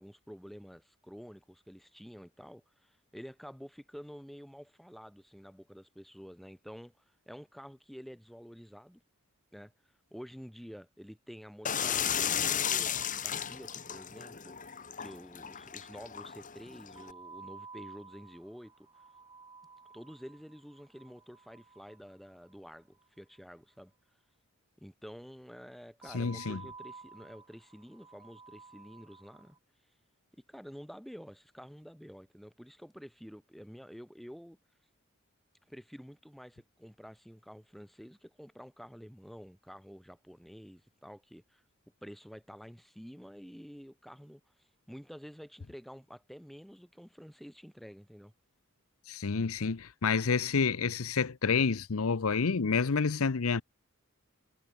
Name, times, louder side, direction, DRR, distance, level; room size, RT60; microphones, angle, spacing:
voice 1, 0.0-9.0 9.5-9.7 10.1-14.6 15.0-18.7 19.9-23.9 24.8-29.6 30.5-34.6 35.7-41.6 42.0-48.3, equal, ahead, 6.8 m, -49 dB
sound 1, 11.7-17.1, left 9 dB, 35° left, 2.0 m, -34 dB
sound 2, 12.8-13.7 14.0-14.1 14.3-14.4 16.9-23.1 26.0-29.6, right 4 dB, 20° right, 3.8 m, -53 dB
voice 2, 26.1-26.6 49.1-53.6, left 5 dB, 80° left, 0.7 m, -29 dB
head